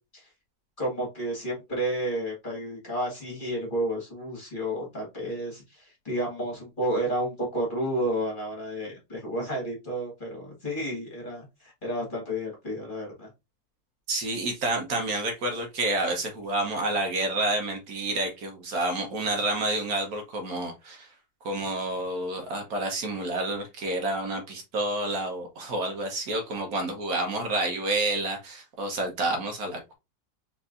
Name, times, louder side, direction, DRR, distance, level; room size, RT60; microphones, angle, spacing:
voice 1, 0.8-13.3, right 1 dB, 30° left, -2 dB, 1.8 m, -31 dB
voice 2, 14.1-21.1 21.4-29.9, right 2 dB, 65° right, 4 dB, 1.4 m, -29 dB
4.5 x 3.7 x 2.5 m, 0.24 s
omnidirectional pair, 1.7 m